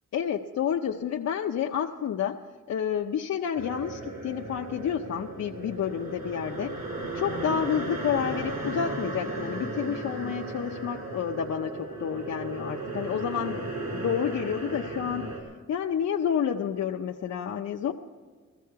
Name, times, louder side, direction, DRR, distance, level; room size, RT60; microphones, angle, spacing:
voice 1, 0.1-2.4 2.7-6.7 7.1-15.3 15.7-17.9, left 8 dB, 65° left, 1 dB, 0.7 m, -29 dB
sound 1, 3.5-15.4, right 2 dB, 65° right, 4.1 m, -35 dB
16.0 x 14.5 x 4.7 m, 1.5 s
wide cardioid pair, 140°, 29 cm